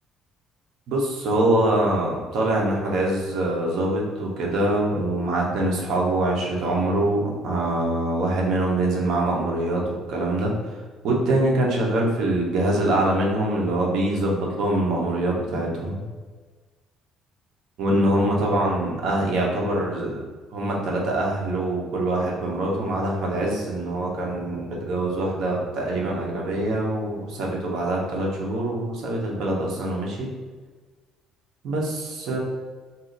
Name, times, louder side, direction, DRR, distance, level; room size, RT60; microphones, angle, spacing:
voice 1, 0.9-9.8 10.1-10.5 11.0-16.0 17.8-20.2 20.5-30.3 31.6-32.4, right 1 dB, 65° right, -2 dB, 0.9 m, -24 dB
2.7 x 2.4 x 3.9 m, 1.4 s
cardioid pair, 130°, 0 cm